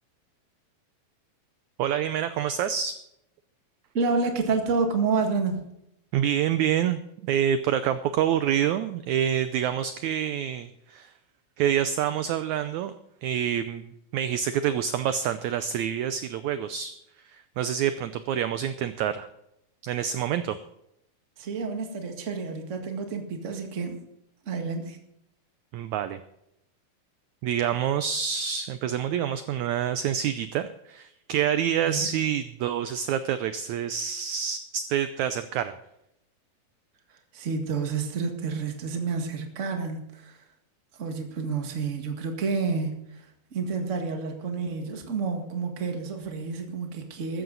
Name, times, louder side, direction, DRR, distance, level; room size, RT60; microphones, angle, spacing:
voice 1, 1.8-2.9 6.1-11.1 11.6-12.9 13.2-16.9 17.3-19.3 19.8-20.6 25.7-26.2 27.4-35.7, right 9 dB, 80° right, 11 dB, 1.7 m, -27 dB
voice 2, 3.9-5.7 21.4-24.0 24.4-25.0 31.8-32.1 37.3-40.4 41.0-47.4, right 4 dB, 30° right, 4 dB, 1.4 m, -29 dB
14.5 x 14.0 x 4.0 m, 0.78 s
omnidirectional pair, 4.0 m